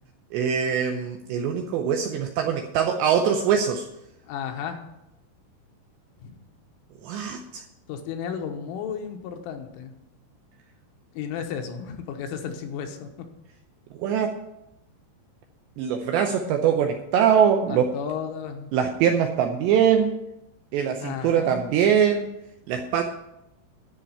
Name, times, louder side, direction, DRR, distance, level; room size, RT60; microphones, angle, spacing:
voice 1, 0.3-3.9 7.0-7.6 14.0-14.4 15.8-17.9 18.7-20.1 20.7-22.3 22.7-23.0, right 8 dB, 80° right, 4 dB, 2.5 m, -22 dB
voice 2, 4.3-4.8 6.2-6.4 7.9-9.9 11.2-13.3 17.7-18.7 21.0-21.6, left 7 dB, 80° left, 5 dB, 3.5 m, -33 dB
13.0 x 5.2 x 8.5 m, 0.87 s
omnidirectional pair, 5.9 m